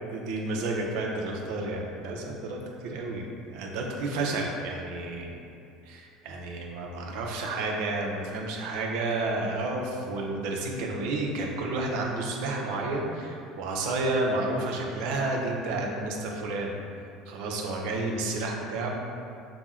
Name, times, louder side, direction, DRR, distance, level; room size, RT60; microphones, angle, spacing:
voice 1, 0.1-5.4 5.9-16.7 17.3-18.9, right 2 dB, 75° right, 0 dB, 0.6 m, -31 dB
5.8 x 2.1 x 3.7 m, 2.5 s
cardioid pair, 125°, 0 cm